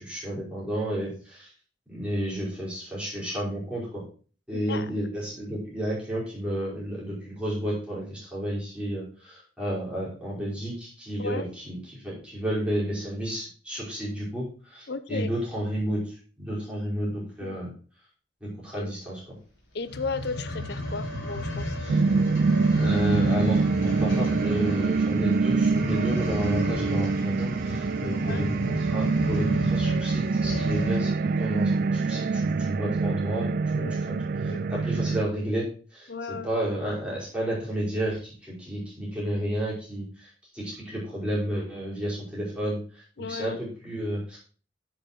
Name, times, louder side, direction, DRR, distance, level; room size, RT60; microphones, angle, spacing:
voice 1, 0.0-1.5 1.9-4.0 4.5-17.7 18.4-19.2 21.8-22.0 22.8-44.4, equal, 5° right, -7 dB, 5.3 m, -32 dB
voice 2, 4.5-4.9 11.2-11.5 14.9-15.3 17.0-17.2 17.4-17.6 18.8-18.9 19.7-22.1 28.1-28.5 33.8-34.6 36.1-36.5 43.2-43.6, left 4 dB, 60° left, 13 dB, 0.7 m, -35 dB
sound 1, 19.8-31.1 31.7-31.8, left 1 dB, 85° left, 3.6 m, -33 dB
sound 2, 21.9-35.3, right 4 dB, 50° right, 0.4 m, -25 dB
10.0 x 6.8 x 4.5 m, 0.40 s
head